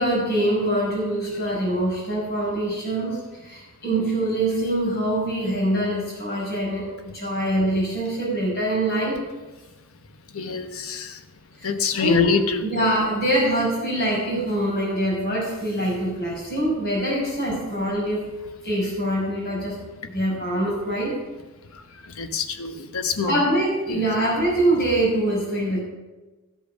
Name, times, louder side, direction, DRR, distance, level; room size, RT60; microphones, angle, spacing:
voice 1, 0.0-9.2 11.6-11.7 12.0-12.3 12.6-18.3 18.6-19.8 20.1-21.2 23.2-25.8, right 1 dB, 50° left, -2 dB, 5.8 m, -24 dB
voice 2, 10.3-11.2 11.6-12.6 22.2-23.4 23.9-24.0, left 4 dB, 85° left, 8 dB, 1.0 m, -25 dB
14.0 x 8.6 x 6.3 m, 1.1 s
head